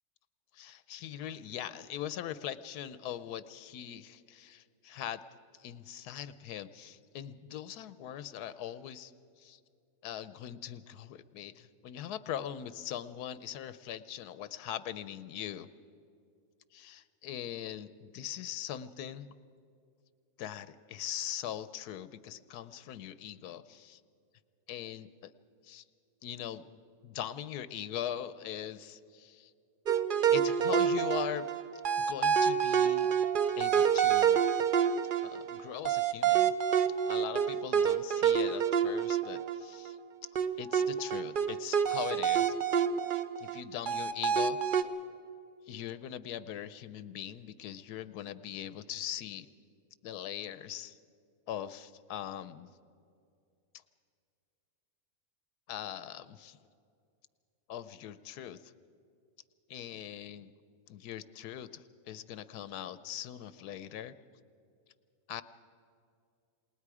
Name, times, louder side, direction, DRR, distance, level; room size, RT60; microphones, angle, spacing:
voice 1, 0.5-5.2 5.6-9.1 9.4-9.6 10.0-15.7 16.7-19.3 20.4-24.0 24.7-25.3 25.6-25.8 26.2-29.5 30.3-31.5 32.1-33.1 33.6-34.4 35.2-36.5 37.1-40.0 40.6-42.6 43.4-44.9 45.7-49.5 50.0-51.0 51.5-52.7 55.7-56.6 57.7-58.7 59.7-60.5 60.9-64.1 65.3-65.4, left 10 dB, 85° left, 14 dB, 1.2 m, -41 dB
sound 1, 29.9-39.9 40.3-43.6 43.9-44.8, right 8 dB, 55° right, 0.5 m, -28 dB
28.5 x 19.5 x 4.9 m, 2.4 s
omnidirectional pair, 1.6 m